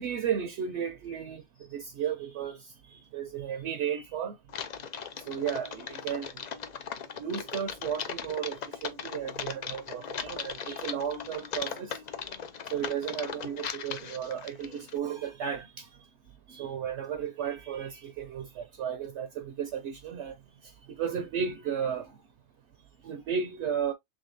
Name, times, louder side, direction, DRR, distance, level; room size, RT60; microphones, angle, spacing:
voice 1, 0.0-1.4 1.7-2.6 2.9-4.3 5.3-6.3 7.2-12.0 12.7-15.8 16.5-20.3 21.0-22.0 23.0-23.9, right 8 dB, 65° right, 0.8 m, -34 dB
Typing, 4.5-15.0, left 7 dB, 70° left, 0.4 m, -38 dB
3.7 x 3.6 x 2.5 m
omnidirectional pair, 1.4 m